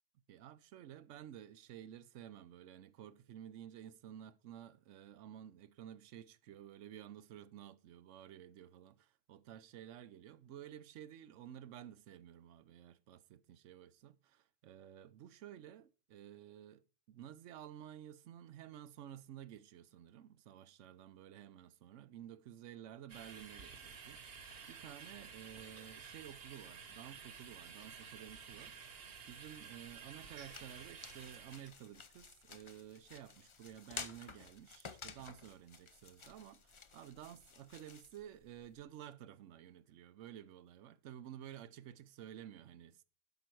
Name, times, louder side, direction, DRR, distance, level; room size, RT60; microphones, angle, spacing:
voice 1, 0.3-43.1, right 10 dB, 90° right, 1.0 m, -53 dB
sound 1, 23.1-31.7, right 6 dB, 55° right, 1.2 m, -52 dB
sound 2, 29.8-38.8, left 5 dB, 35° left, 0.5 m, -53 dB
12.0 x 5.7 x 4.6 m
omnidirectional pair, 1.2 m